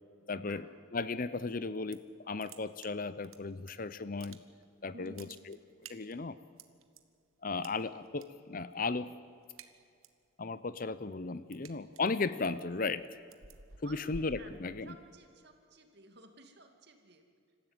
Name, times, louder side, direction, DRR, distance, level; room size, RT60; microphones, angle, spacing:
voice 1, 0.3-0.6 0.9-2.0 2.2-4.4 4.8-5.6 5.9-6.4 7.4-9.1 10.4-13.2 13.8-15.0, left 3 dB, 40° left, 15 dB, 0.6 m, -35 dB
sound 1, 1.6-2.1 2.4-3.7 4.0-4.7 5.0-7.0 7.6-8.3 8.6-8.9 9.2-10.2 10.6-15.2, right 4 dB, 85° right, 1.4 m, -52 dB
voice 2, 4.9-5.2 13.8-17.2, right 2 dB, 50° right, 5 dB, 2.4 m, -54 dB
26.0 x 15.0 x 8.9 m, 2.4 s
head